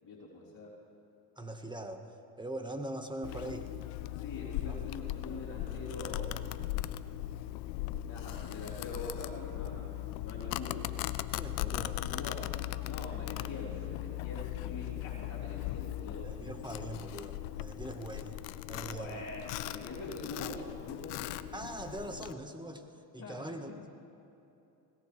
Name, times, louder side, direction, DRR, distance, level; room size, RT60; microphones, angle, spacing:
voice 1, 0.0-0.8 4.2-6.4 8.1-10.9 11.3-11.4 11.7-16.3 18.7-21.4 23.2-23.5, left 2 dB, 35° left, -8 dB, 3.6 m, -44 dB
voice 2, 1.4-2.1 2.4-3.7 4.6-4.8 11.4-12.0 16.2-18.4 18.7-19.2 21.5-22.9 23.1-23.9, right 1 dB, 10° right, 5 dB, 1.6 m, -41 dB
Domestic sounds home sounds, 3.2-22.3, left 15 dB, 85° left, 0.6 m, -38 dB
20.5 x 17.5 x 3.4 m, 2.9 s
supercardioid pair, 70°, 49 cm